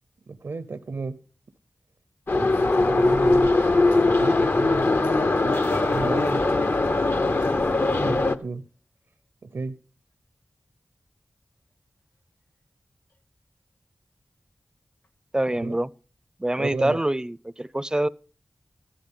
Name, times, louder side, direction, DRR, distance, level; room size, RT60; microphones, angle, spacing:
voice 1, 0.3-1.2 2.3-3.5 4.0-7.4 7.9-8.7 9.4-9.8 15.6-15.8 16.6-17.0, right 3 dB, 75° right, 0.7 m, -33 dB
Subway metro underground, 2.3-8.4, left 2 dB, 50° left, 0.7 m, -21 dB
sound 1, 5.5-7.6 13.1-13.2 15.0-15.1, left 2 dB, 70° left, 1.9 m, -45 dB
voice 2, 15.3-15.9 16.4-18.1, right 1 dB, 15° right, 0.5 m, -25 dB
14.5 x 11.5 x 3.8 m
wide cardioid pair, 50°, 5 cm